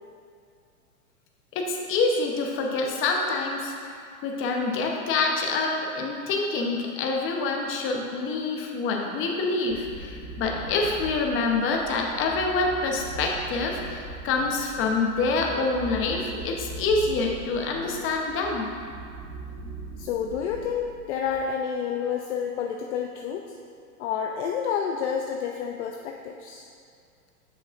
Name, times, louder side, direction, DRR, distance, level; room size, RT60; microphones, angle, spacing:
voice 1, 1.5-18.7, left 3 dB, 30° left, 1 dB, 0.8 m, -26 dB
sound 1, 9.7-21.4, right 3 dB, 15° right, 0.8 m, -40 dB
voice 2, 20.0-23.5 24.0-26.7, left 7 dB, 50° left, 2 dB, 0.5 m, -29 dB
7.7 x 6.1 x 2.5 m, 2.3 s
hypercardioid pair, 115°, 44 cm